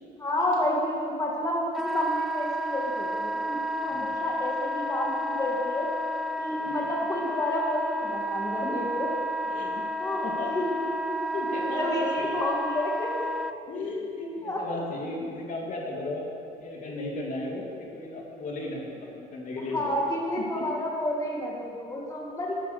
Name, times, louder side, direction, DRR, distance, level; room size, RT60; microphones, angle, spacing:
voice 1, 0.2-5.9 6.4-9.1 10.0-11.4 11.7-13.3 14.4-14.8 19.7-22.5, left 1 dB, 20° left, -3 dB, 2.2 m, -30 dB
Wind instrument woodwind instrument, 1.7-13.5, equal, ahead, 0.4 m, -31 dB
voice 2, 9.5-9.9 10.2-10.5 11.3-12.4 13.7-16.3 16.6-19.9 20.4-20.7, left 2 dB, 50° left, -1 dB, 2.8 m, -35 dB
13.5 x 11.5 x 6.8 m, 2.5 s
cardioid pair, 110°, 17 cm